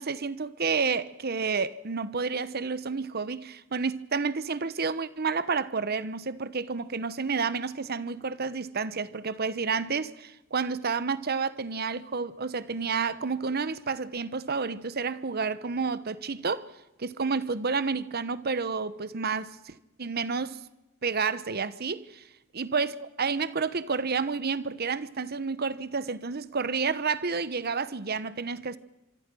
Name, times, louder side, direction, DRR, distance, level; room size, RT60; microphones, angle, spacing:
voice 1, 0.0-16.7 17.0-20.6 21.0-22.2 22.5-28.8, right 5 dB, 50° right, 1.0 m, -30 dB
26.0 x 24.0 x 6.2 m
head